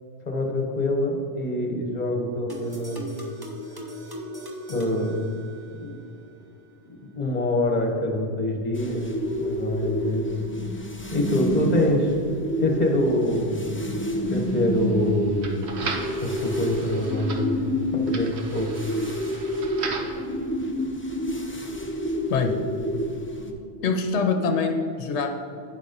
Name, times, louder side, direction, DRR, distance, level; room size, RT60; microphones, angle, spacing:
voice 1, 0.3-3.0 4.7-5.2 5.7-5.9 6.8-9.0 9.4-10.3 11.1-12.1 12.6-13.7 14.3-15.9 16.2-18.7, left 1 dB, 40° left, 2 dB, 1.2 m, -25 dB
sound 1, 2.5-6.0, equal, 25° right, 0.8 m, -38 dB
sound 2, 8.7-23.5, equal, 15° left, 0.5 m, -29 dB
sound 3, 14.3-20.2, right 3 dB, 75° right, 1.2 m, -37 dB
voice 2, 23.8-25.4, left 4 dB, 90° left, 5 dB, 0.9 m, -24 dB
9.6 x 4.1 x 5.2 m, 2.5 s
omnidirectional pair, 1.1 m